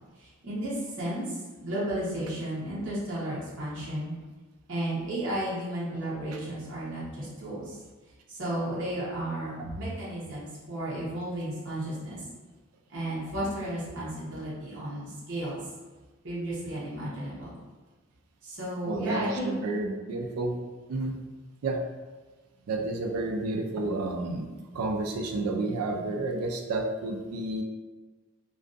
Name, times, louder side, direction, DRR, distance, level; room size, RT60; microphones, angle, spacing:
voice 1, 0.2-4.1 4.7-7.8 8.3-12.2 12.9-15.6 16.2-17.6 18.4-19.5, right 1 dB, 55° right, -8 dB, 0.7 m, -33 dB
voice 2, 18.9-20.5 20.9-21.2 21.6-21.8 22.7-24.5 24.7-27.6, right 2 dB, 90° right, 3 dB, 0.3 m, -30 dB
2.5 x 2.3 x 2.3 m, 1.3 s
head